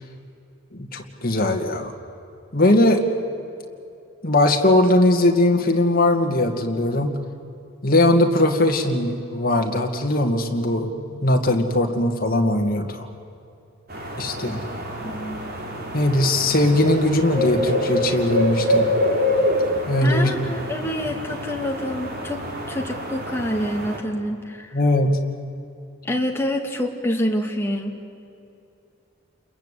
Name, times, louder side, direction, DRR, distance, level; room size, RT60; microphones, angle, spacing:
voice 1, 0.7-1.9 2.5-3.0 4.2-7.1 7.8-13.1 14.2-14.6 15.9-18.9 19.9-20.6 24.7-25.2, left 1 dB, 45° left, 3 dB, 2.2 m, -20 dB
sound 1, 13.9-24.0, left 1 dB, 50° right, 3.6 m, -26 dB
voice 2, 15.0-15.4 20.0-24.8 26.0-27.9, left 1 dB, 10° left, 1 dB, 2.2 m, -27 dB
30.0 x 21.5 x 8.5 m, 2.7 s
head